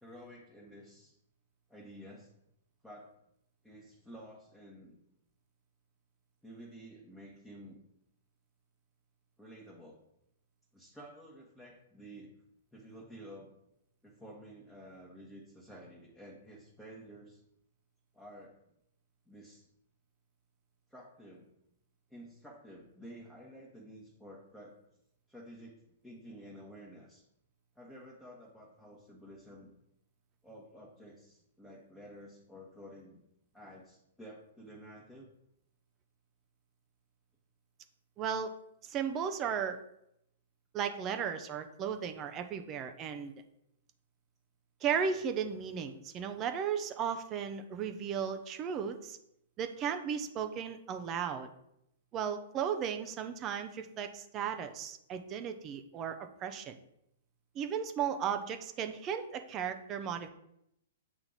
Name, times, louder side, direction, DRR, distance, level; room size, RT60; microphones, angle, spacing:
voice 1, 0.0-1.2 1.7-2.3 2.8-3.1 3.6-5.0 6.4-7.8 9.4-10.0 10.7-12.3 12.7-13.5 14.0-17.4 18.1-18.6 19.3-19.7 20.9-21.5 22.1-24.8 25.3-27.2 27.7-29.7 30.4-33.2 33.5-35.3, equal, 5° left, -5 dB, 1.2 m, -51 dB
voice 2, 38.2-38.5 38.8-39.8 40.7-43.3 44.8-49.2 49.6-51.5 52.1-56.8 57.5-60.3, right 7 dB, 30° right, 7 dB, 0.6 m, -35 dB
8.2 x 2.9 x 3.9 m, 0.78 s
hypercardioid pair, 115°, 0 cm